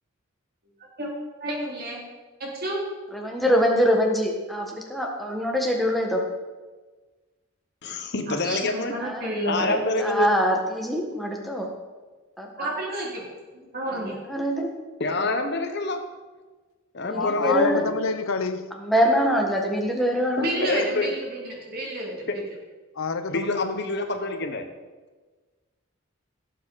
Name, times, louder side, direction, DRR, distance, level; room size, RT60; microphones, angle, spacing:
voice 1, 1.4-2.0 2.4-2.8 8.3-10.0 12.6-13.2 13.5-14.1 20.4-22.4, right 1 dB, 45° right, 3.0 m, -30 dB
voice 2, 3.1-6.2 9.0-9.3 10.0-11.7 12.4-12.7 14.0-14.7 17.0-17.8 18.8-20.5, equal, ahead, 1.5 m, -24 dB
voice 3, 7.8-8.9 9.5-10.3 15.0-16.0 16.9-18.0 20.6-21.1 23.3-24.7, left 2 dB, 55° left, 1.1 m, -27 dB
voice 4, 17.1-18.7 23.0-23.8, left 4 dB, 85° left, 0.8 m, -28 dB
17.0 x 7.6 x 4.1 m
head